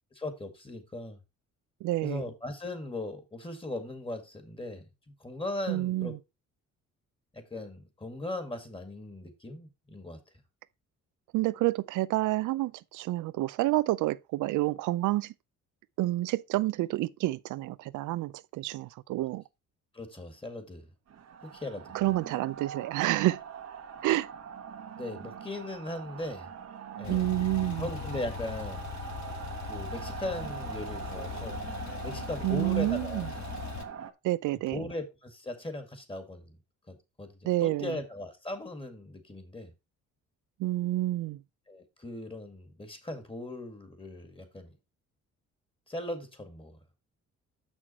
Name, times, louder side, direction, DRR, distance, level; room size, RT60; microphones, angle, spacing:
voice 1, 0.1-1.2 2.0-4.8 5.2-6.1 7.3-10.2 19.9-20.9 21.4-21.9 25.0-26.5 27.0-27.3 27.8-28.8 29.7-31.6 32.0-33.3 34.7-36.6 36.9-39.7 41.7-44.7 45.9-46.8, left 1 dB, 20° left, 2.0 m, -38 dB
voice 2, 1.8-2.2 5.7-6.2 11.3-15.3 16.0-19.4 21.9-23.4 24.0-24.3 26.9-27.8 32.4-33.3 34.2-34.8 37.4-37.9 40.6-41.4, right 17 dB, 85° right, 0.5 m, -29 dB
sound 1, 21.1-34.1, right 7 dB, 60° right, 1.1 m, -42 dB
Male speech man speaking / Car / Idling, 27.0-33.8, left 10 dB, 65° left, 1.2 m, -40 dB
6.3 x 6.2 x 4.1 m
cardioid pair, 90°, 30 cm